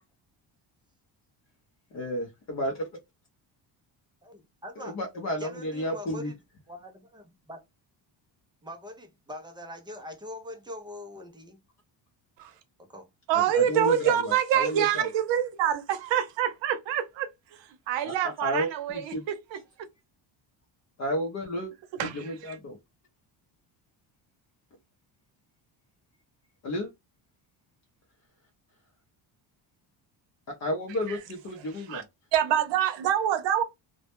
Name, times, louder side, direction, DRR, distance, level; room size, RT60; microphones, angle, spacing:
voice 1, 1.9-2.9 4.8-6.3 13.5-15.1 18.0-18.1 18.4-19.2 21.0-21.7 22.1-22.8 26.6-26.9 30.5-32.0, equal, 40° left, 0.5 m, -32 dB
voice 2, 4.2-5.0 5.4-6.3 6.7-7.6 8.6-11.6 12.8-13.1, left 1 dB, 10° right, 0.3 m, -43 dB
voice 3, 13.3-19.6 22.0-22.6 31.1-31.2 31.8-32.0 32.3-33.6, right 10 dB, 70° right, 0.7 m, -26 dB
2.1 x 2.0 x 2.8 m
cardioid pair, 150°, 45 cm